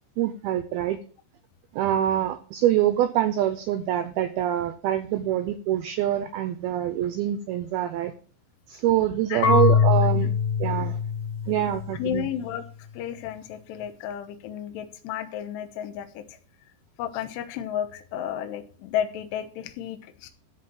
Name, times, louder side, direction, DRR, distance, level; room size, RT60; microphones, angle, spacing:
voice 1, 0.2-1.0 1.7-8.1 8.7-10.3 10.6-11.0 11.5-12.3, right 12 dB, 80° right, 10 dB, 2.2 m, -25 dB
voice 2, 9.3-9.7 10.1-10.3 11.9-12.6 12.9-16.4 17.0-20.3, left 10 dB, 75° left, 7 dB, 3.1 m, -32 dB
Marimba xylophone / Wood, 9.4-12.3, left 7 dB, 50° left, 2.7 m, -23 dB
13.5 x 4.5 x 7.6 m, 0.42 s
omnidirectional pair, 5.2 m